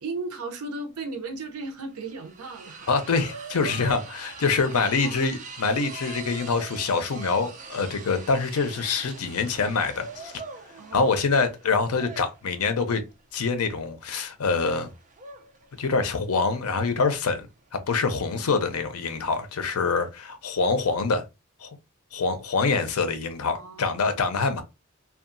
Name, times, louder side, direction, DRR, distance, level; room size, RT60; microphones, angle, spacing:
voice 1, 0.0-2.9 3.3-3.5 5.0-5.3 10.8-11.2 23.5-23.9 24.4-24.5, right 3 dB, 80° right, 0.6 m, -36 dB
sound 1, 1.0-1.1 1.3-20.2, right 4 dB, 35° right, 0.5 m, -44 dB
voice 2, 2.9-10.3 10.9-13.0 13.3-14.9 15.8-17.5 17.9-21.2 21.6-21.7 22.1-24.6, left 4 dB, 80° left, 0.6 m, -25 dB
2.7 x 2.3 x 2.5 m
head